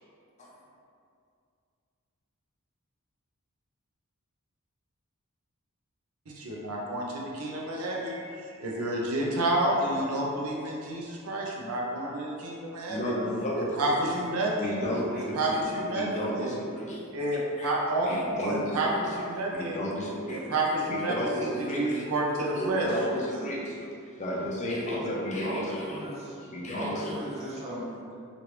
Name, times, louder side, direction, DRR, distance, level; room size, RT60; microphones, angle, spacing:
voice 1, 6.3-8.3 8.6-13.0 13.6-14.8 15.2-16.1 16.3-16.5 17.1-18.9 19.2-19.8 20.3-21.1 21.7-22.9, right 1 dB, 75° right, -2 dB, 0.5 m, -29 dB
voice 2, 12.9-13.7 14.6-15.7 15.9-17.0 17.6-17.7 18.1-19.1 19.5-20.4 20.9-22.1 22.5-23.8 24.2-26.0 26.5-27.1, equal, 35° left, -4 dB, 0.5 m, -32 dB
voice 3, 25.4-26.4 26.7-28.1, equal, 30° right, -6 dB, 0.7 m, -37 dB
3.1 x 2.5 x 2.9 m, 2.4 s
head